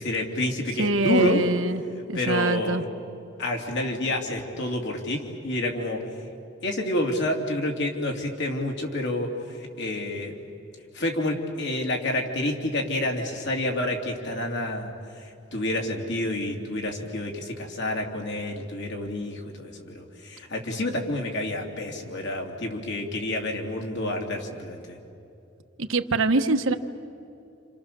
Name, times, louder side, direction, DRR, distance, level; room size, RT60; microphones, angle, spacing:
voice 1, 0.0-1.4 2.1-2.8 3.4-6.0 6.6-9.3 9.8-10.3 10.9-14.9 15.5-25.0, left 1 dB, 60° left, 1 dB, 3.1 m, -28 dB
voice 2, 0.8-1.8 2.1-2.8 25.8-26.7, right 3 dB, 75° right, 7 dB, 1.1 m, -24 dB
29.0 x 28.0 x 6.9 m, 2.7 s
head